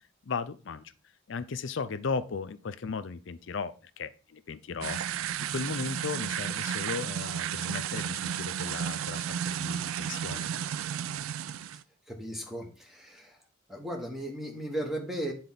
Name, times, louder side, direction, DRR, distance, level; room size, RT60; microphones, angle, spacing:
voice 1, 0.3-0.9 1.3-10.5, left 5 dB, 60° left, 13 dB, 0.5 m, -36 dB
sound 1, 4.8-11.8, right 9 dB, 80° right, 0.3 m, -33 dB
voice 2, 12.1-13.4 13.7-15.3, right 1 dB, ahead, 1 dB, 1.2 m, -36 dB
8.3 x 4.3 x 3.9 m, 0.36 s
head